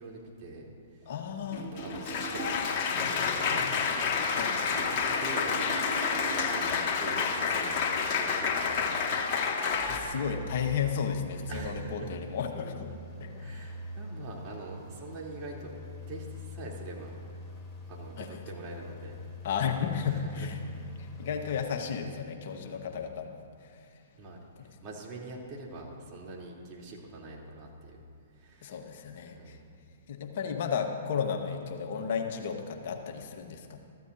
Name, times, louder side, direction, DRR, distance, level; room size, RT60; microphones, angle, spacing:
voice 1, 0.0-1.1 1.7-3.6 3.9-4.2 5.0-9.2 9.5-9.7 11.5-12.1 13.4-15.7 16.1-17.1 17.9-19.2 20.1-20.5 22.6-23.1 24.2-28.0 28.3-28.8 29.3-29.7, right 2 dB, 35° right, -3 dB, 3.6 m, -44 dB
voice 2, 1.1-1.7 4.3-4.7 9.8-13.9 18.2-18.4 19.4-20.6 21.0-23.9 24.6-24.7 28.6-29.6 30.1-33.8, left 7 dB, 55° left, 3 dB, 1.6 m, -34 dB
Applause, 1.5-10.0, left 5 dB, 40° left, 2.2 m, -29 dB
sound 1, 1.5-2.7 4.7-6.7, right 4 dB, 50° right, 3.3 m, -41 dB
sound 2, 7.6-21.6, left 1 dB, 5° left, 3.5 m, -45 dB
24.5 x 14.5 x 2.9 m, 2.4 s
hypercardioid pair, 120°, 0 cm